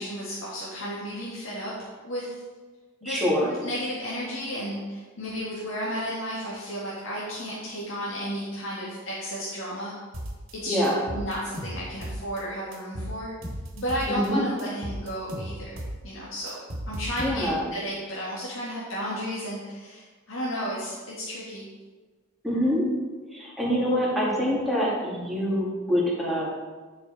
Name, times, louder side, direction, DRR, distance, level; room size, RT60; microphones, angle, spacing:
voice 1, 0.0-1.7 2.0-2.3 3.0-3.2 3.5-9.9 10.5-10.8 11.1-13.3 13.7-15.8 16.0-16.6 16.9-21.7, equal, 70° left, -7 dB, 1.8 m, -33 dB
voice 2, 3.0-3.5 10.7-11.0 14.1-14.4 17.2-17.7 22.4-22.8 23.3-26.5, equal, ahead, -7 dB, 2.3 m, -25 dB
sound 1, 10.1-10.5 10.8-12.4 12.7-14.3 14.6-17.7, equal, 70° right, 1.7 m, -36 dB
10.5 x 5.4 x 4.2 m, 1.3 s
head